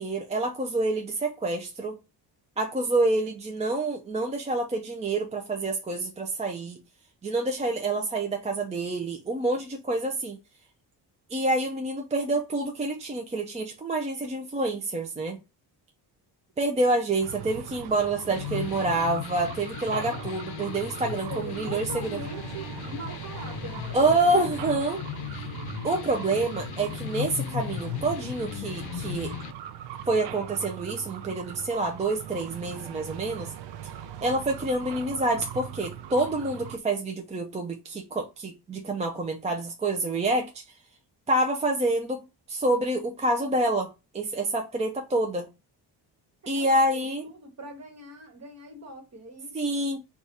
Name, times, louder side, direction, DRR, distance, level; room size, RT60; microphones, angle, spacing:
voice 1, 0.0-2.0 2.6-6.8 7.2-10.4 11.3-15.4 16.6-22.2 23.9-25.0 25.8-29.3 30.1-33.5 33.8-33.9 34.2-40.6 41.3-42.2 42.5-45.5 46.5-47.2 49.5-50.0, right 2 dB, 15° right, 0.4 m, -27 dB
sound 1, 17.2-36.8, right 10 dB, 80° right, 0.5 m, -40 dB
sound 2, 18.3-29.5, left 12 dB, 65° left, 0.6 m, -37 dB
voice 2, 21.0-24.4 46.4-49.9, right 2 dB, 35° right, 1.3 m, -42 dB
4.8 x 2.4 x 4.0 m
cardioid pair, 155°, 42 cm